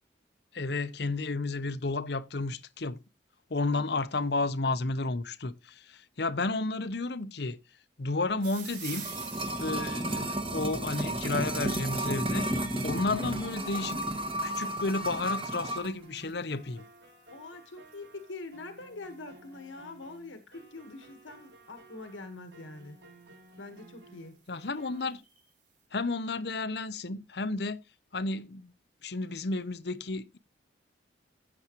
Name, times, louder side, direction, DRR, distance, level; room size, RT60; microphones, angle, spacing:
voice 1, 0.5-3.0 3.5-7.6 8.0-9.1 9.6-12.5 12.8-14.0 14.4-16.8 24.5-25.2 25.9-27.8 28.1-28.7 29.0-30.4, left 3 dB, 60° left, 0.8 m, -32 dB
voice 2, 3.6-4.0 13.0-13.3 17.3-23.0 23.6-24.4, left 3 dB, 85° left, 1.4 m, -45 dB
sound 1, 8.4-21.6 22.5-22.9 23.5-23.6 23.8-23.9 24.2-25.5, right 7 dB, 45° right, 5.0 m, -51 dB
sound 2, 8.5-15.9 16.2-16.3, right 1 dB, 30° right, 1.7 m, -33 dB
sound 3, 14.1-25.2, right 2 dB, 75° right, 3.0 m, -55 dB
15.5 x 7.2 x 3.0 m
head